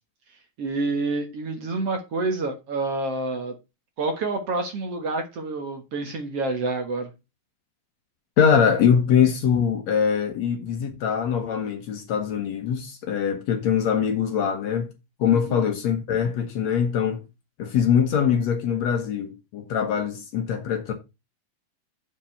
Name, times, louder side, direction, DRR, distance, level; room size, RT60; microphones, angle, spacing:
voice 1, 0.6-3.6 4.0-7.1 15.3-15.7, right 3 dB, 55° right, 2.1 m, -28 dB
voice 2, 8.4-14.9 15.2-17.2 17.6-20.9, left 7 dB, 60° left, 2.1 m, -23 dB
7.4 x 5.4 x 6.4 m
omnidirectional pair, 3.9 m